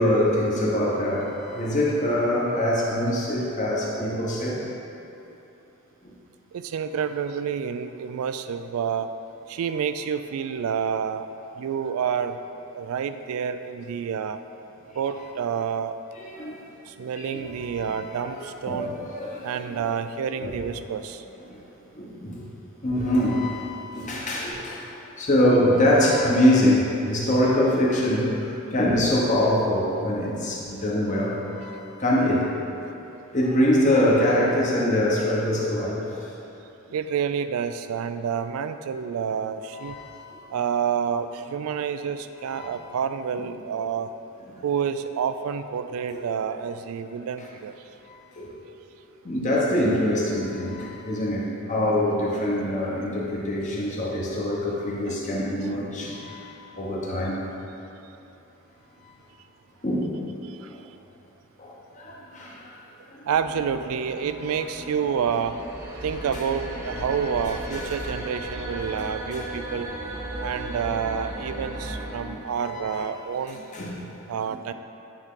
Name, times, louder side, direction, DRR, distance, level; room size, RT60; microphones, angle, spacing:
voice 1, 0.0-4.6 16.1-16.6 17.0-18.3 18.6-19.9 20.4-20.5 21.5-21.6 21.9-22.4 22.8-32.5 32.8-32.9 33.3-36.1 39.8-40.4 42.5-42.7 43.4-43.5 44.5-44.6 48.1-48.5 49.2-57.4 59.8-60.2 61.6-62.7 63.1-63.2 64.5-64.6 67.7-67.8 69.3-69.4 72.2-73.0 73.7-74.0, left 1 dB, 35° left, -4 dB, 1.0 m, -24 dB
voice 2, 6.5-9.1 9.5-11.3 11.6-12.4 12.7-14.4 15.0-15.9 16.9-18.9 19.4-21.2 36.9-40.0 40.5-44.1 44.6-47.8 54.0-54.3 55.1-55.2 55.6-55.7 60.5-60.7 63.3-65.6 66.0-69.9 70.4-73.6 74.3-74.7, right 7 dB, 80° right, 10 dB, 0.3 m, -28 dB
sound 1, 63.3-72.2, right 1 dB, 15° right, 1.0 m, -35 dB
8.9 x 3.6 x 3.7 m, 2.9 s
head